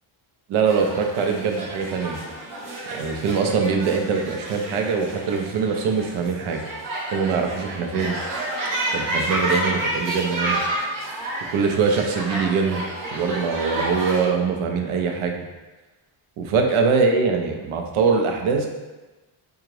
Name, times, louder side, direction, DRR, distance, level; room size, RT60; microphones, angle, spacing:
voice 1, 0.5-2.2 2.9-6.6 7.1-8.2 8.9-10.6 11.5-12.8 13.1-15.5 16.4-18.7, right 5 dB, 80° right, 3 dB, 0.6 m, -23 dB
sound 1, 0.7-14.3, right 1 dB, 40° right, 0.7 m, -30 dB
3.7 x 2.4 x 3.1 m, 1.1 s
cardioid pair, 155°, 49 cm